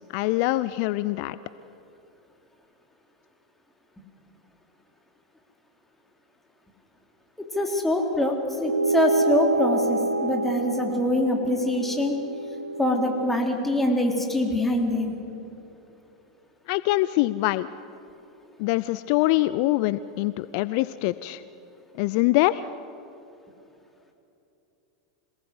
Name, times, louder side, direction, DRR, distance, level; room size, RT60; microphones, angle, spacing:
voice 1, 0.1-1.4 16.7-17.7 18.6-21.4 22.0-22.7, left 18 dB, 50° left, 16 dB, 0.5 m, -24 dB
voice 2, 7.5-12.1 12.8-15.1, left 1 dB, 5° left, 2 dB, 3.9 m, -24 dB
sound 1, 8.6-13.4, right 3 dB, 85° right, 0.7 m, -27 dB
26.5 x 19.0 x 8.0 m, 2.9 s
figure-of-eight pair, 90°, 3 cm